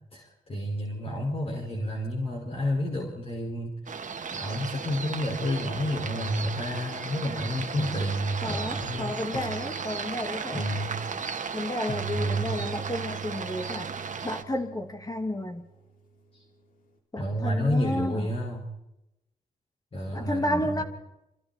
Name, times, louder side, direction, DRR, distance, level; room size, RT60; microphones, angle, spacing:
voice 1, 0.1-9.1 10.5-11.0 12.1-12.5 16.3-16.4 17.2-18.7 19.9-20.8, equal, 40° left, -1 dB, 5.2 m, -30 dB
sound 1, 3.9-14.4, right 5 dB, 60° right, 1.9 m, -35 dB
sound 2, 7.8-8.9 9.3-10.6 11.9-15.8, right 5 dB, 70° left, 4.9 m, -40 dB
voice 2, 8.4-10.7 11.5-13.9 14.2-15.7 17.1-18.3 20.1-20.8, left 1 dB, 25° left, 5 dB, 2.7 m, -32 dB
27.0 x 26.0 x 4.3 m, 0.89 s
cardioid pair, 75°, 15 cm